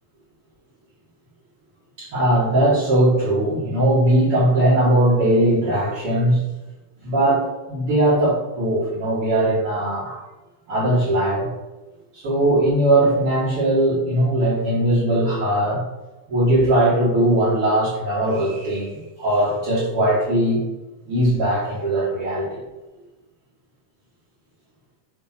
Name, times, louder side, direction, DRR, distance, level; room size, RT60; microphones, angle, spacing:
voice 1, 2.0-6.4 7.0-10.2 10.7-11.5 12.1-15.8 16.3-20.7 21.0-22.6, right 1 dB, 55° right, -11 dB, 1.6 m, -19 dB
7.1 x 2.8 x 5.6 m, 1.1 s
omnidirectional pair, 5.1 m